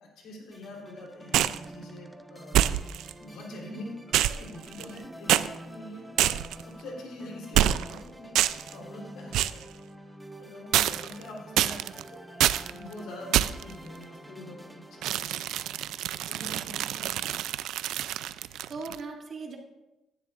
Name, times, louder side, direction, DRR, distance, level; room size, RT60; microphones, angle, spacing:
voice 1, 0.2-8.4 8.7-9.8 10.4-15.1 16.3-16.9, left 1 dB, 85° left, -1 dB, 3.3 m, -44 dB
sound 1, 0.5-17.9, right 1 dB, 10° right, 0.8 m, -48 dB
sound 2, 1.3-1.6 2.5-3.1 4.1-5.0 5.3-5.5 6.2-6.6 7.5-8.0 8.3-8.7 9.3-9.6 10.7-11.2 11.6-12.0 12.4-12.7 13.3-13.7 15.0-19.0, right 12 dB, 85° right, 0.3 m, -26 dB
voice 2, 3.5-3.8 11.3-11.9 16.4-17.2 18.3-19.6, right 4 dB, 50° right, 1 dB, 1.9 m, -42 dB
16.5 x 11.0 x 2.5 m, 0.99 s
cardioid pair, 90°, 0 cm